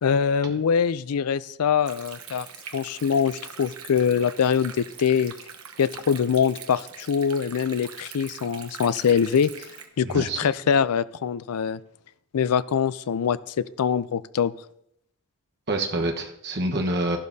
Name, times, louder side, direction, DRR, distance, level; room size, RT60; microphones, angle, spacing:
voice 1, 0.0-2.5 2.7-5.3 5.8-9.7 10.0-11.8 12.3-14.5, left 7 dB, 85° left, 17 dB, 0.4 m, -23 dB
Stream, 1.9-9.9, right 7 dB, 70° right, 1.1 m, -43 dB
voice 2, 10.0-10.4 15.7-17.2, right 1 dB, 50° right, 2 dB, 1.2 m, -27 dB
13.0 x 11.5 x 2.7 m, 0.77 s
head